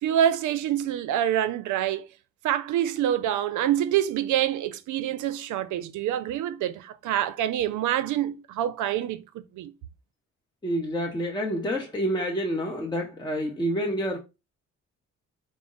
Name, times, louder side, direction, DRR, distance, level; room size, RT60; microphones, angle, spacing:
voice 1, 0.0-2.1 2.4-9.7, right 11 dB, 75° right, 0.5 m, -26 dB
voice 2, 10.6-14.2, equal, 15° left, 0.7 m, -28 dB
5.1 x 2.0 x 3.7 m
cardioid pair, 90°, 30 cm